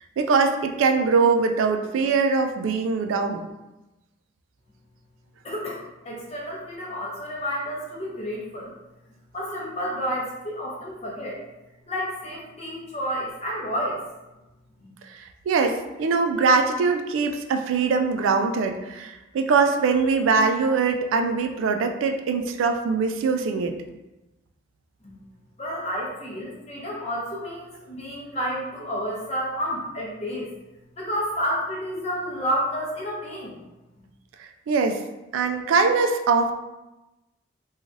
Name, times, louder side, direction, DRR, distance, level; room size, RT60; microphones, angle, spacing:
voice 1, 0.2-3.5 15.5-23.7 34.4-35.0 35.3-36.6, right 4 dB, 85° right, 5 dB, 0.3 m, -22 dB
voice 2, 5.4-8.7 9.3-11.4 11.9-14.0 25.6-30.5 31.0-33.6, equal, 35° left, -3 dB, 0.6 m, -30 dB
3.1 x 2.3 x 2.5 m, 1.0 s
head